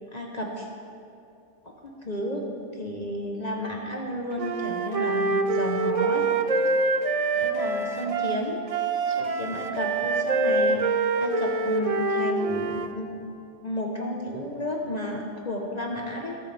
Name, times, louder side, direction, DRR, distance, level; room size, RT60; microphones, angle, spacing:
voice 1, 0.1-0.7 1.6-2.5 2.7-6.3 6.6-6.8 7.3-8.6 9.1-13.3 13.6-16.4, left 1 dB, 35° left, 0 dB, 1.2 m, -32 dB
Wind instrument woodwind instrument, 4.4-12.9, right 3 dB, 40° right, 0.5 m, -25 dB
22.0 x 9.1 x 3.5 m, 2.5 s
omnidirectional pair, 1.3 m